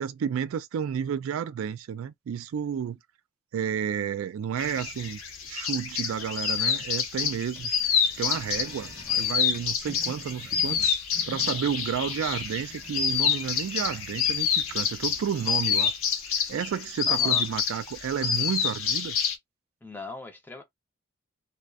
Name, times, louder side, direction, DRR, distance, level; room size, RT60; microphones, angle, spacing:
voice 1, 0.0-3.0 3.5-5.2 5.5-7.7 8.2-10.8 11.3-15.9 16.5-19.2, right 8 dB, 80° right, 0.3 m, -31 dB
sound 1, 4.6-19.4, left 7 dB, 85° left, 0.7 m, -28 dB
sound 2, 5.9-15.6, right 1 dB, 10° right, 1.2 m, -49 dB
voice 2, 17.1-17.4 19.8-20.6, left 3 dB, 10° left, 0.6 m, -39 dB
2.5 x 2.1 x 2.3 m
head